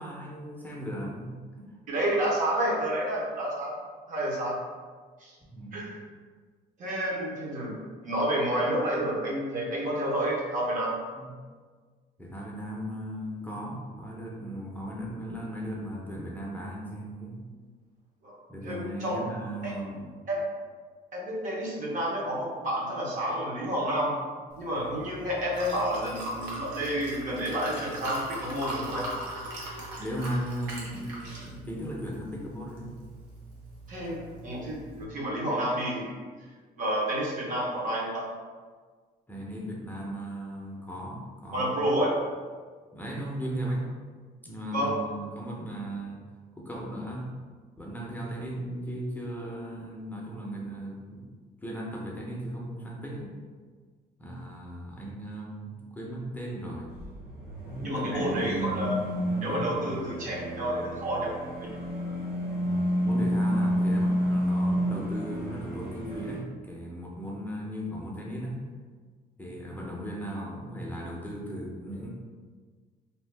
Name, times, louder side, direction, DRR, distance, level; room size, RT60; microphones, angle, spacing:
voice 1, 0.0-1.8 5.4-5.8 11.1-11.3 12.2-17.4 18.5-20.1 30.0-32.9 39.3-41.8 42.9-43.8 44.4-46.2 46.6-47.4 47.8-51.2 51.6-53.3 54.2-56.9 57.9-59.9 62.5-68.6 69.4-72.1, right 1 dB, 10° left, -4 dB, 0.5 m, -37 dB
voice 2, 1.9-3.7 4.1-4.6 5.2-5.4 5.7-6.0 6.8-11.0 18.2-18.4 18.6-19.2 19.6-19.7 20.3-20.4 21.1-24.2 24.6-29.1 33.9-36.3 36.8-38.3 41.5-42.2 44.7-44.9 57.8-59.0 59.4-61.3 61.6-61.8, right 1 dB, 50° right, -3 dB, 0.9 m, -30 dB
Liquid, 24.5-35.0, right 1 dB, 85° right, 0.8 m, -40 dB
sound 1, 56.9-66.4, equal, 70° right, 1.5 m, -30 dB
2.7 x 2.3 x 3.3 m, 1.5 s
cardioid pair, 110°, 17 cm